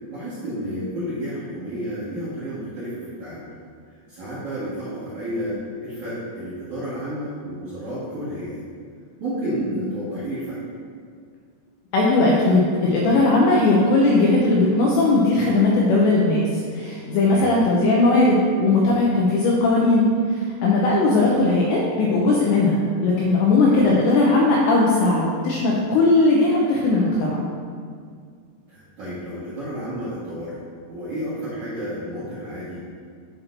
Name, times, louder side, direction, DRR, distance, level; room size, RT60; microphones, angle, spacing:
voice 1, 0.1-3.5 4.1-8.6 9.2-10.6 17.2-17.5 23.7-23.9 28.7-30.6 30.9-32.8, equal, 60° right, -12 dB, 2.0 m, -31 dB
voice 2, 11.9-16.4 16.7-27.5, left 2 dB, 85° left, -3 dB, 2.6 m, -18 dB
8.7 x 7.5 x 2.6 m, 2.1 s
omnidirectional pair, 5.9 m